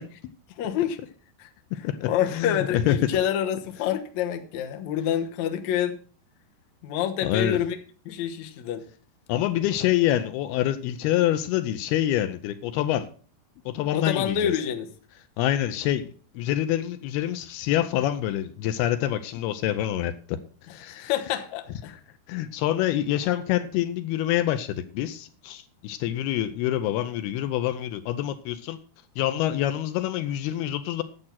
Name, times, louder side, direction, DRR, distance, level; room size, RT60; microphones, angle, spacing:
voice 1, 0.6-1.0 1.4-1.5 2.1-6.0 6.8-7.8 8.1-8.8 13.9-14.9 21.0-21.9, left 9 dB, 65° left, 2.0 m, -27 dB
voice 2, 1.8-3.0 7.2-7.6 9.3-13.1 13.7-14.5 15.4-16.0 16.4-20.4 20.7-21.1 22.3-28.8 29.2-31.0, left 12 dB, 80° left, 2.6 m, -26 dB
11.0 x 7.7 x 5.7 m
omnidirectional pair, 4.7 m